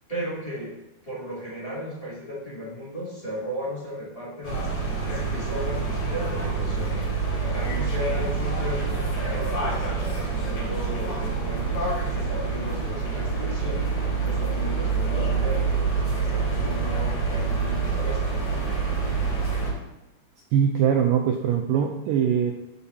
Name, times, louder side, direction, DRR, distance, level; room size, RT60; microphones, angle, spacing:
voice 1, 0.1-0.7 1.0-6.9 7.4-11.8 12.0-13.8 14.2-18.2, equal, 10° left, -9 dB, 2.5 m, -35 dB
sound 1, 4.4-19.7, right 4 dB, 40° left, 3.4 m, -26 dB
voice 2, 20.5-22.5, right 8 dB, 80° right, 1 dB, 2.0 m, -22 dB
13.5 x 5.2 x 2.8 m, 0.97 s
omnidirectional pair, 4.6 m